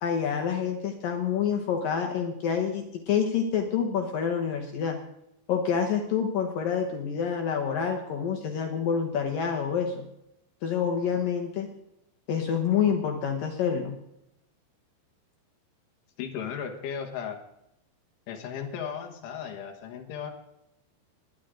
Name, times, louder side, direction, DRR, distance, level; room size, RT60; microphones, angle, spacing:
voice 1, 0.0-5.0 5.5-10.0 10.6-11.7 12.3-13.9, left 7 dB, 65° left, 4 dB, 2.3 m, -27 dB
voice 2, 16.2-17.4 18.3-20.3, left 7 dB, 85° left, 3 dB, 4.0 m, -35 dB
20.0 x 10.5 x 3.8 m, 0.82 s
omnidirectional pair, 5.4 m